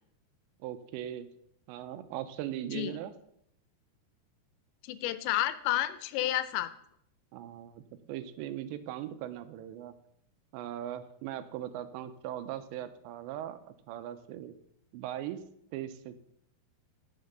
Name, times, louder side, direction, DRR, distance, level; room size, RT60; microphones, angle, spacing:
voice 1, 0.6-1.3 1.7-3.1 7.3-9.9 10.5-14.6 14.9-15.4 15.7-16.2, right 12 dB, 85° right, 11 dB, 3.0 m, -39 dB
voice 2, 4.8-6.7, left 14 dB, 85° left, 13 dB, 2.9 m, -30 dB
9.4 x 6.9 x 6.7 m, 0.72 s
omnidirectional pair, 5.0 m